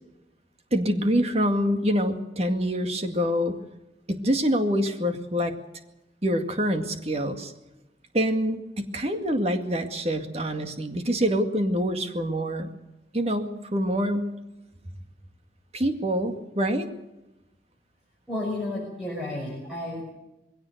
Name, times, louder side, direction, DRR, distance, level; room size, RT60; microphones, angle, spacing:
voice 1, 0.7-3.6 4.1-5.5 6.2-7.5 8.1-12.7 13.1-14.3 15.7-16.9, equal, 35° right, 6 dB, 2.2 m, -25 dB
voice 2, 18.3-20.0, left 1 dB, 5° right, -4 dB, 5.9 m, -32 dB
22.0 x 17.0 x 7.9 m, 0.99 s
head